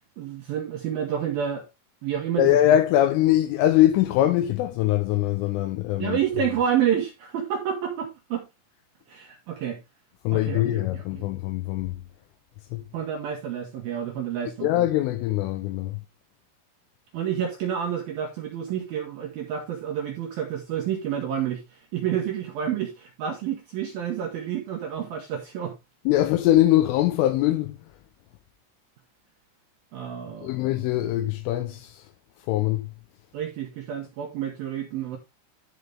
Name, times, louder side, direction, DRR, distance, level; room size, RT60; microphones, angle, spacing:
voice 1, 0.2-1.7 2.0-2.6 6.0-8.5 9.1-9.8 10.3-10.6 10.9-11.2 12.9-14.7 17.1-25.7 29.9-30.6 33.3-35.2, right 9 dB, 75° right, 2.2 m, -29 dB
voice 2, 2.4-6.2 10.2-12.0 12.7-12.8 14.6-16.0 26.1-27.8 30.4-32.1 32.4-32.9, left 13 dB, 80° left, 3.2 m, -22 dB
11.5 x 5.4 x 3.4 m
omnidirectional pair, 5.9 m